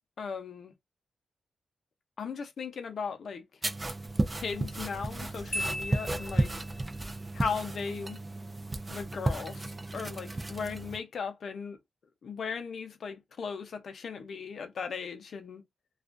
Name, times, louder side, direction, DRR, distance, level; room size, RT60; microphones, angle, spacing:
voice 1, 0.2-0.7 2.2-3.4 4.4-6.5 7.3-8.2 8.9-11.8 12.2-15.6, left 5 dB, 60° left, 0.6 m, -37 dB
sound 1, 3.6-11.0, right 2 dB, 20° right, 0.3 m, -33 dB
Marimba xylophone, 5.5-6.9, left 1 dB, 10° left, 1.0 m, -37 dB
2.4 x 2.2 x 2.4 m
wide cardioid pair, 135°, 0 cm